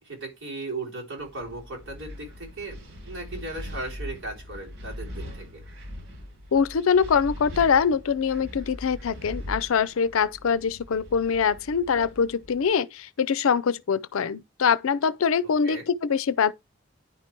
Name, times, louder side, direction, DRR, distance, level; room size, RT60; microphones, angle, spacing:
voice 1, 0.0-2.8 3.1-5.6 15.4-15.8, right 2 dB, 70° right, 3.7 m, -37 dB
Wind, 1.2-12.7, left 1 dB, 90° right, 3.1 m, -41 dB
voice 2, 6.5-16.5, left 6 dB, 85° left, 0.5 m, -23 dB
10.0 x 4.5 x 4.4 m
head